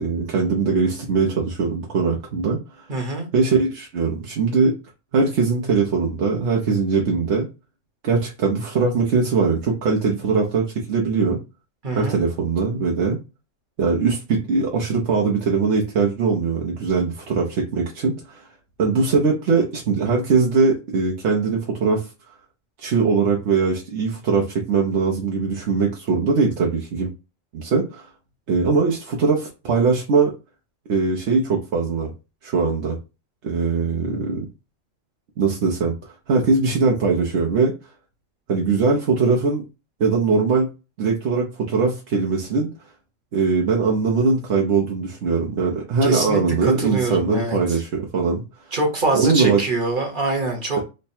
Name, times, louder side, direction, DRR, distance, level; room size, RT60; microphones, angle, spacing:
voice 1, 0.0-2.9 3.3-4.7 5.1-7.5 8.0-11.4 11.9-13.2 13.8-18.5 18.8-22.1 22.8-27.1 27.5-28.1 28.5-30.3 30.9-32.1 32.4-32.9 33.4-34.5 35.4-37.7 38.5-39.6 40.0-40.7 41.0-42.7 43.3-48.4 49.1-49.6, right 4 dB, 65° right, 0 dB, 1.0 m, -21 dB
voice 2, 2.9-3.3 11.8-12.2 46.0-47.8 48.7-50.8, right 2 dB, 40° right, 1 dB, 1.2 m, -24 dB
3.2 x 2.2 x 4.2 m, 0.29 s
omnidirectional pair, 1.3 m